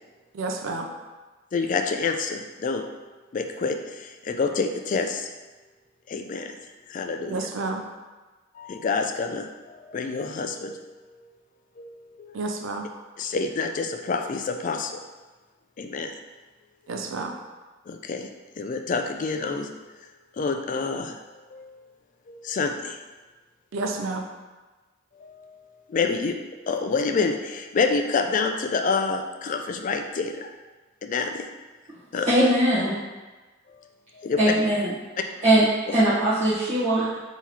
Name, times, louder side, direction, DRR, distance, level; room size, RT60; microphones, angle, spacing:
voice 1, 0.3-0.9 7.3-7.9 12.3-12.9 16.9-17.3 23.7-24.2, right 3 dB, 80° right, 3 dB, 0.4 m, -30 dB
voice 2, 1.5-2.8 3.3-5.3 6.1-6.6 6.9-7.5 8.5-11.3 11.8-12.5 13.2-14.9 15.8-16.1 17.9-18.3 18.6-19.7 20.3-21.2 21.5-21.8 22.3-23.0 25.2-26.4 26.7-30.5 31.0-31.4 32.1-32.3 34.2-34.4 35.9-36.0, left 4 dB, 40° left, 6 dB, 0.3 m, -28 dB
voice 3, 32.3-32.9 34.4-34.9 35.4-35.7 35.9-37.2, right 1 dB, 35° right, -14 dB, 1.2 m, -20 dB
3.9 x 3.0 x 4.2 m, 1.3 s
head